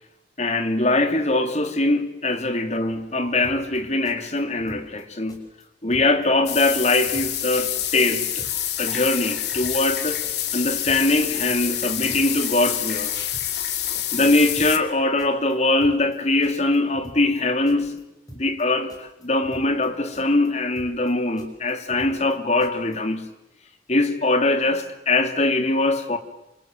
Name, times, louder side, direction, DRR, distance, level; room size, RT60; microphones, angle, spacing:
voice 1, 0.4-5.5 5.8-8.5 8.8-10.2 10.5-13.2 14.1-18.0 18.4-23.3 23.9-26.2, left 2 dB, 40° left, 2.9 m, -22 dB
sound 1, 3.4-3.8 4.0-5.0 5.3-5.6 5.9-6.3 6.5-7.5 7.8-8.1 8.4-8.7 9.0-10.0 10.2-10.6 10.9-11.2 11.5-12.4 12.7-13.1 13.3-13.7 13.9-14.9 15.2-15.5 15.8-16.2 16.4-17.4 17.7-18.0 18.3-18.6 18.9-19.9 20.1-20.5 20.8-21.1 21.4-22.3 22.6-23.0, equal, 20° left, 6.1 m, -45 dB
sound 2, 6.5-14.8, left 11 dB, 70° left, 2.6 m, -27 dB
28.0 x 27.5 x 7.6 m
head